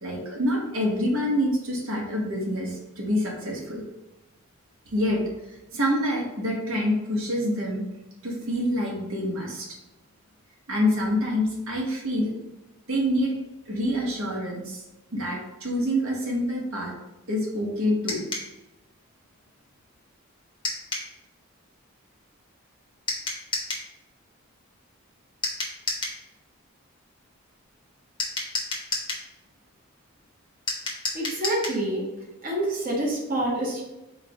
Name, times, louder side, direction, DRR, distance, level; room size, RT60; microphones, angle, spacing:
voice 1, 0.0-3.8 4.9-5.2 5.7-7.8 8.2-9.7 10.7-12.3 12.9-13.3 13.7-14.8 15.1-16.9 17.3-18.2, equal, 70° right, -1 dB, 1.0 m, -26 dB
sound 1, 18.1-18.5 20.6-21.1 23.1-23.9 25.4-26.2 28.2-29.3 30.7-31.8, left 3 dB, 20° left, 0.8 m, -30 dB
voice 2, 31.1-32.0 32.4-33.8, right 1 dB, 40° right, -4 dB, 0.9 m, -27 dB
4.5 x 2.3 x 4.8 m, 0.96 s
head